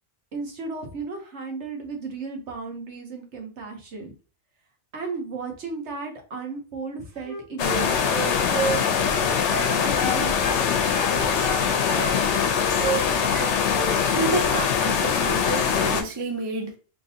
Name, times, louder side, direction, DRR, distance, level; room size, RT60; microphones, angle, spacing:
voice 1, 0.3-4.1 4.9-9.4 9.7-11.3 11.6-12.1, right 4 dB, 60° right, 1.2 m, -35 dB
Wind instrument woodwind instrument, 7.2-10.6 10.9-12.5 12.8-13.0 13.3-14.0 14.2-14.5, right 4 dB, 85° right, 1.4 m, -30 dB
sound 1, 7.6-16.0, left 7 dB, 70° left, 0.8 m, -23 dB
voice 2, 14.1-16.8, right 2 dB, 25° right, 0.6 m, -29 dB
3.7 x 2.7 x 2.7 m
omnidirectional pair, 1.4 m